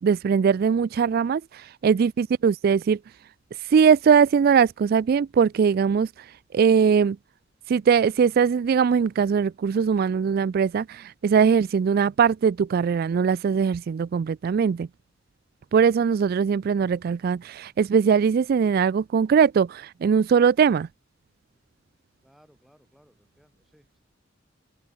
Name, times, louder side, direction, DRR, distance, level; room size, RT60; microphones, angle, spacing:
voice 1, 0.0-3.0 3.6-7.2 7.7-14.9 15.7-20.9, right 6 dB, 50° right, 0.3 m, -21 dB
voice 2, 22.2-24.0, equal, ahead, 6.2 m, -60 dB
open air
head